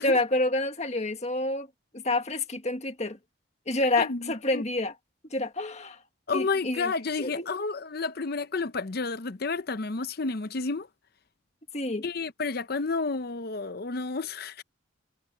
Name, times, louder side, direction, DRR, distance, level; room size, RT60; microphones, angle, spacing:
voice 1, 0.0-1.7 1.9-3.2 3.7-4.9 5.3-6.0 6.3-6.9 7.2-7.5 11.7-12.0, left 2 dB, 35° left, 1.7 m, -28 dB
voice 2, 4.0-4.6 6.3-10.9 12.0-14.6, left 4 dB, 50° left, 0.7 m, -31 dB
head